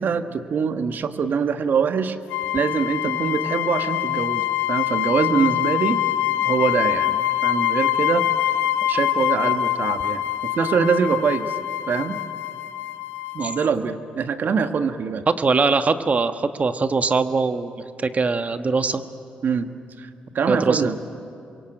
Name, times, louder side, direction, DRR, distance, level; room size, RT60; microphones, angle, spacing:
voice 1, 0.0-2.2 2.5-6.0 6.4-7.2 7.4-8.3 8.8-11.6 11.9-12.2 13.3-15.2 19.4-19.7 20.0-20.1 20.3-21.0, right 6 dB, 60° right, 8 dB, 1.5 m, -23 dB
sound 1, 2.3-13.7, left 13 dB, 90° left, 0.6 m, -24 dB
voice 2, 15.4-17.7 18.0-19.0 20.5-21.0, right 4 dB, 40° right, 9 dB, 1.5 m, -22 dB
28.0 x 23.0 x 9.1 m, 2.6 s
supercardioid pair, 55°, 4 cm